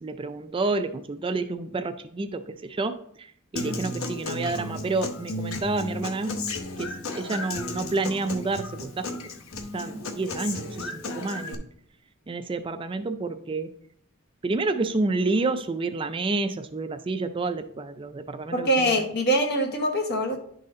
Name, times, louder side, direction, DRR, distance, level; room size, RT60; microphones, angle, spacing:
voice 1, 0.0-6.4 6.8-9.1 9.7-11.6 12.3-13.7 14.4-19.0, right 3 dB, 25° right, 0.3 m, -29 dB
Human voice / Acoustic guitar, 3.6-11.5, left 2 dB, 80° left, 0.8 m, -34 dB
voice 2, 18.5-20.4, equal, 50° left, 1.1 m, -24 dB
10.5 x 4.1 x 3.7 m
head